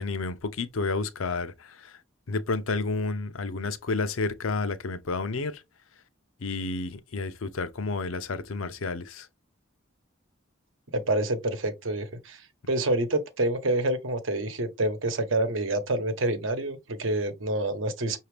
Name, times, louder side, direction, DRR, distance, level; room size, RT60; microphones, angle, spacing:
voice 1, 0.0-1.9 2.3-5.6 6.4-9.3, left 3 dB, 90° left, 0.6 m, -30 dB
voice 2, 10.9-18.2, right 2 dB, 75° right, 1.0 m, -27 dB
5.9 x 2.7 x 3.2 m
head